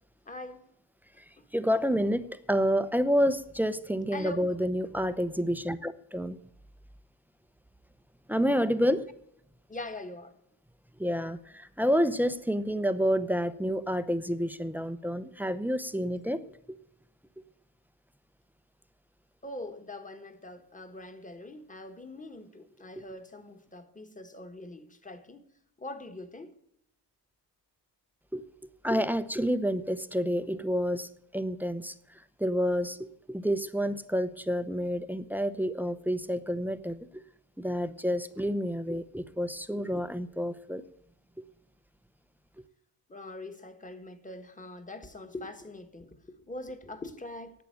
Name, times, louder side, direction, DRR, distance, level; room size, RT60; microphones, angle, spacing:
voice 1, 0.3-0.6 4.1-4.5 9.7-10.3 19.4-25.4 25.8-26.5 43.1-47.6, left 2 dB, 20° left, 1.6 m, -43 dB
voice 2, 1.5-6.4 8.3-9.1 11.0-16.4 28.3-28.4 28.8-31.9 32.4-33.0 33.3-37.0 37.6-40.8, equal, 5° right, 0.7 m, -29 dB
11.5 x 8.2 x 9.2 m
cardioid pair, 85°, 43 cm